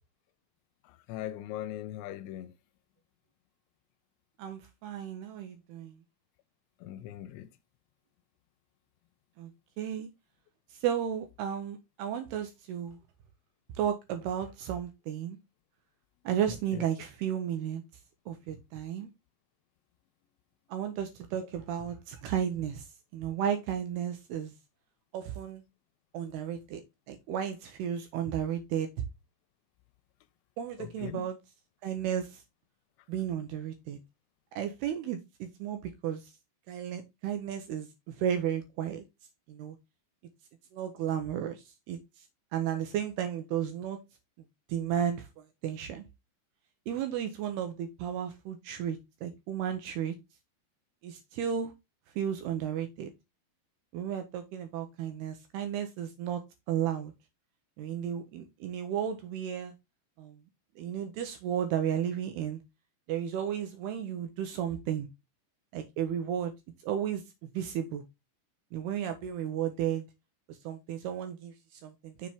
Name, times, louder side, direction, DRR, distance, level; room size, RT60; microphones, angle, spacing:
voice 1, 0.9-2.5 6.8-7.5 16.7-16.8 30.8-31.3, left 12 dB, 85° left, 2.8 m, -40 dB
voice 2, 4.4-6.0 9.4-9.5 9.8-10.1 10.7-13.0 13.8-15.4 16.3-17.8 18.3-19.1 20.7-22.9 23.1-24.5 25.1-25.6 26.1-26.8 27.1-28.9 30.6-31.4 31.8-32.4 33.1-34.0 34.6-36.3 36.7-39.0 39.5-39.8 40.7-42.0 42.5-44.0 44.7-46.0 46.9-50.2 51.0-51.7 52.2-53.1 53.9-56.4 56.7-57.1 57.8-59.7 60.2-60.4 60.8-62.6 63.1-65.1 65.7-66.5 66.8-68.0 68.7-70.0 70.5-72.3, right 9 dB, 80° right, 2.4 m, -33 dB
6.9 x 5.2 x 3.5 m
omnidirectional pair, 5.3 m